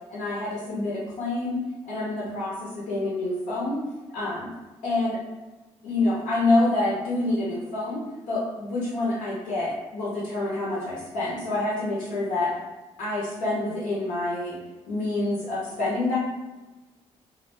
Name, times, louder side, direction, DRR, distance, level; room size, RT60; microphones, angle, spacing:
voice 1, 0.1-1.6 1.9-3.8 4.1-4.5 4.8-5.2 5.8-8.0 8.3-12.5 13.0-14.5 14.9-16.2, left 2 dB, 85° left, -7 dB, 0.6 m, -27 dB
2.3 x 2.1 x 3.2 m, 1.2 s
supercardioid pair, 50°, 14 cm